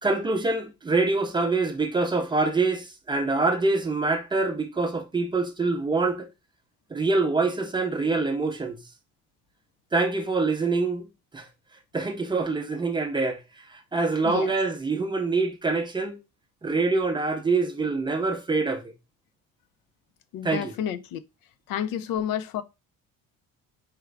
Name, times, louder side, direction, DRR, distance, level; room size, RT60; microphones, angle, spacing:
voice 1, 0.0-6.3 6.9-8.8 9.9-11.1 11.3-11.5 11.9-13.4 13.7-16.2 16.6-18.9 20.4-20.7, right 3 dB, 15° right, 0.4 m, -25 dB
voice 2, 14.2-14.6 20.3-21.2 21.7-22.6, left 9 dB, 80° left, 0.6 m, -30 dB
4.8 x 2.4 x 3.3 m
cardioid pair, 155°, 33 cm